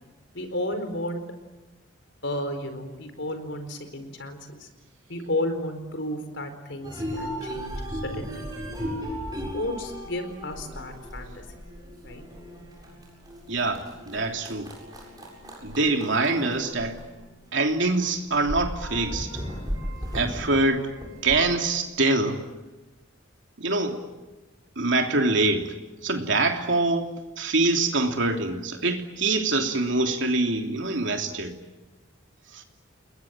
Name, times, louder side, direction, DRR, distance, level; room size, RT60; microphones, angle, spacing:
voice 1, 0.3-1.2 2.2-4.7 5.1-8.4 9.5-11.4 12.0-12.2, left 1 dB, 65° left, 8 dB, 4.4 m, -32 dB
sound 1, 6.8-17.7 18.0-18.1 18.3-21.5, equal, 20° right, 7.9 m, -36 dB
voice 2, 13.5-14.7 15.6-17.0 17.5-19.3 20.1-20.9 21.2-22.4 23.6-24.0 24.8-25.7 26.0-31.5 32.5-32.6, right 2 dB, 70° right, 3 dB, 3.2 m, -24 dB
29.5 x 21.0 x 8.9 m, 1.1 s
head